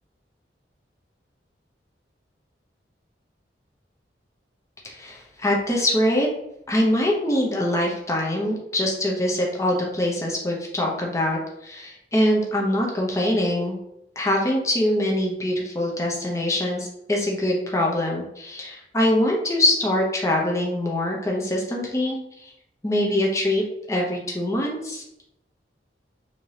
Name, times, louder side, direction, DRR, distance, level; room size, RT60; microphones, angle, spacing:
voice 1, 4.8-6.3 6.7-13.8 14.2-22.5 22.8-25.0, left 1 dB, 15° left, -1 dB, 0.7 m, -23 dB
3.6 x 2.7 x 3.2 m, 0.82 s
head